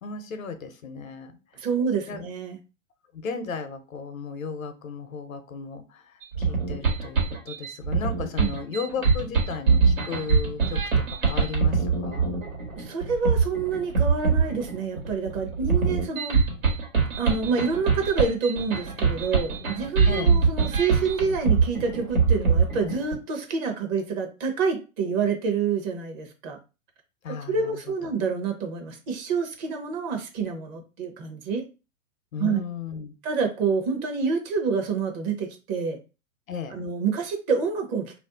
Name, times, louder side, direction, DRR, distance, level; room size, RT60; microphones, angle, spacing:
voice 1, 0.0-1.6 2.1-2.2 3.1-12.4 20.0-20.4 27.2-28.1 32.3-33.2 36.5-36.8, left 5 dB, 85° left, 9 dB, 0.7 m, -35 dB
voice 2, 1.6-2.6 8.4-8.6 12.7-16.4 17.0-26.6 27.5-31.6 32.4-32.6 33.2-36.0 36.7-38.2, right 5 dB, 35° right, 4 dB, 0.7 m, -27 dB
sound 1, 6.2-23.1, right 5 dB, 85° right, 1.3 m, -23 dB
2.5 x 2.0 x 3.6 m, 0.31 s
hypercardioid pair, 110°, 40 cm